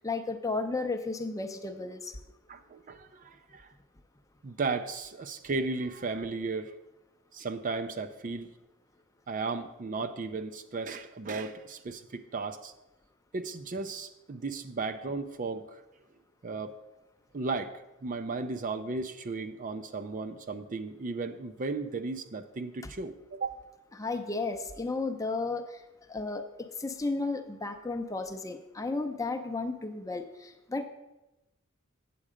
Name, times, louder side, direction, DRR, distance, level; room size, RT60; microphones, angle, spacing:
voice 1, 0.0-2.2 22.8-22.9 23.9-25.8 26.1-30.9, left 3 dB, 15° left, 7 dB, 0.6 m, -33 dB
voice 2, 2.5-3.7 4.4-6.7 7.3-8.5 9.3-12.7 13.3-15.8 16.4-16.8 17.3-17.7 18.0-23.6, right 3 dB, 40° right, 9 dB, 0.4 m, -35 dB
8.5 x 7.4 x 5.0 m, 0.99 s
head